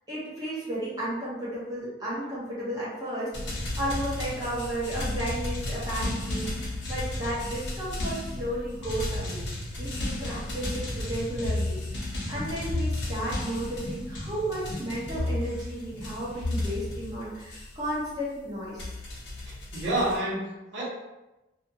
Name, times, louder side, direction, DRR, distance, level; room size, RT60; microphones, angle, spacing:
voice 1, 0.1-3.3 3.8-9.4 9.8-11.8 12.3-18.9, right 1 dB, 20° right, -9 dB, 0.8 m, -33 dB
sound 1, 3.3-18.1 18.8-20.2, left 1 dB, 70° left, 0.8 m, -33 dB
voice 2, 19.5-20.8, right 1 dB, 75° right, -7 dB, 1.1 m, -29 dB
2.5 x 2.4 x 2.7 m, 1.0 s
head